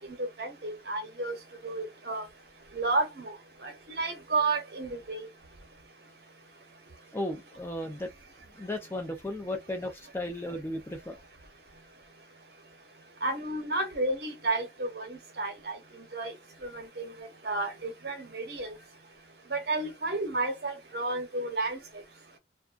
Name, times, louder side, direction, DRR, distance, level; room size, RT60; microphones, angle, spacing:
voice 1, 0.0-1.4 1.6-2.2 2.7-3.3 3.6-5.3 13.2-15.8 16.1-16.3 16.6-17.1 17.4-18.7 19.5-21.8, right 2 dB, 55° right, 0.8 m, -32 dB
voice 2, 7.1-8.1 8.6-11.2, left 1 dB, 10° left, 0.4 m, -35 dB
2.3 x 2.2 x 2.4 m
head